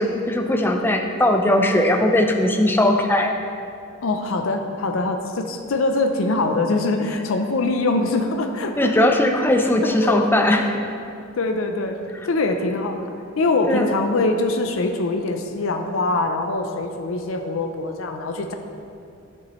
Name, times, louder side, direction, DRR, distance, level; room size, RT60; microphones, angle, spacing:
voice 1, 0.0-3.3 8.8-10.8 13.7-13.9, left 1 dB, 10° left, 4 dB, 0.5 m, -19 dB
voice 2, 4.0-8.9 10.0-10.2 11.3-12.0 12.2-18.5, left 2 dB, 70° left, 5 dB, 0.5 m, -23 dB
10.5 x 6.9 x 3.1 m, 2.5 s
head